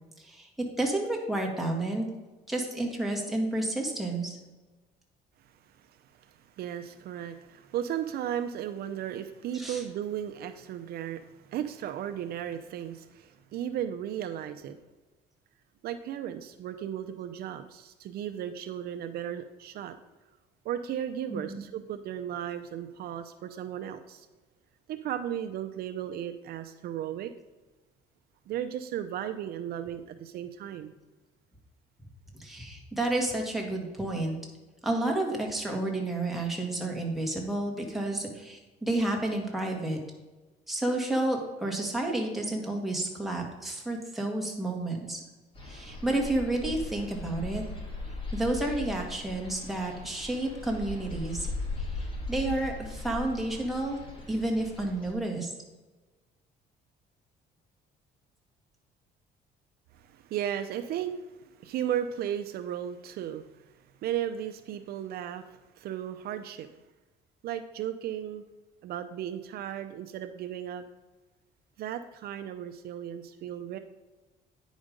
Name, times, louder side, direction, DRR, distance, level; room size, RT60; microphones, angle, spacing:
voice 1, 0.2-2.1 2.5-4.4 9.5-9.8 21.3-21.6 32.3-34.4 34.8-40.0 40.7-45.2 45.6-47.6 48.3-51.5 51.8-54.0 54.3-55.5, right 2 dB, ahead, -1 dB, 2.0 m, -30 dB
voice 2, 5.8-14.8 15.8-19.9 20.6-24.3 24.9-27.3 28.5-30.9 59.9-63.5 64.0-66.7 67.4-68.4 68.8-70.8 71.8-73.8, right 10 dB, 65° right, 8 dB, 0.6 m, -35 dB
sound 1, 45.5-55.1, left 2 dB, 30° left, 2.5 m, -38 dB
9.7 x 5.1 x 5.2 m, 1.2 s
cardioid pair, 110°, 17 cm